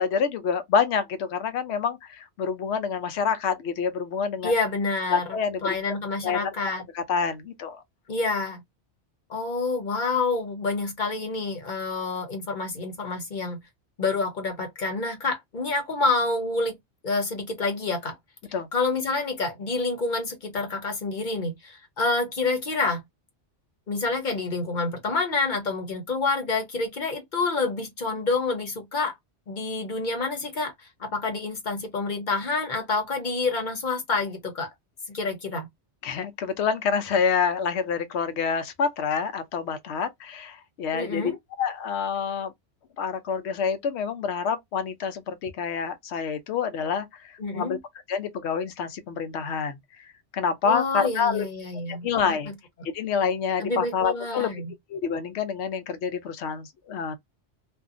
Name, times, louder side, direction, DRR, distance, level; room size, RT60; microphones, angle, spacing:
voice 1, 0.0-4.5 5.1-5.7 6.2-6.5 6.9-7.8 18.5-18.7 36.0-41.3 41.6-42.5 43.0-47.8 48.1-49.8 50.3-51.5 51.9-52.5 52.9-54.5 54.9-57.2, left 6 dB, 70° left, 0.8 m, -27 dB
voice 2, 4.4-5.4 5.6-6.8 8.1-8.6 9.3-13.6 14.0-16.8 17.0-18.2 18.7-23.0 23.9-29.1 29.5-30.7 31.0-34.7 35.1-35.7 40.9-41.4 47.4-47.8 50.6-52.4 53.6-54.7, left 3 dB, 45° left, 1.0 m, -28 dB
2.6 x 2.4 x 2.4 m
omnidirectional pair, 1.2 m